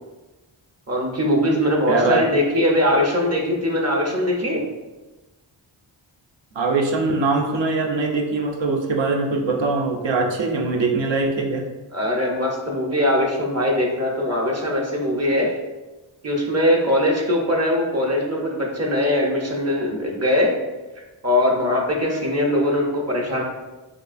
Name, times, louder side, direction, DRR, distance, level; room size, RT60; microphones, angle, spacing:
voice 1, 0.9-4.6 11.9-15.5 16.2-20.5 21.2-23.4, left 1 dB, 30° right, -1 dB, 0.8 m, -21 dB
voice 2, 1.9-2.3 6.5-11.7, right 3 dB, 65° right, 1 dB, 0.6 m, -22 dB
3.4 x 2.4 x 2.4 m, 1.1 s
cardioid pair, 40°, 48 cm